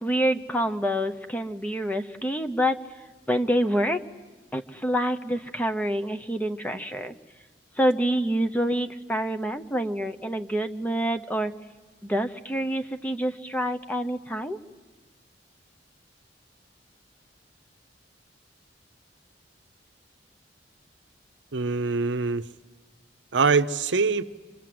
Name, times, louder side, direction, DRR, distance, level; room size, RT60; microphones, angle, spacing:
voice 1, 0.0-2.8 3.3-4.0 4.5-7.1 7.8-11.5 12.0-14.6, equal, 10° left, 7 dB, 0.8 m, -27 dB
voice 2, 21.5-22.4 23.3-24.2, right 4 dB, 80° right, 12 dB, 0.7 m, -23 dB
26.0 x 24.0 x 7.7 m, 1.3 s
head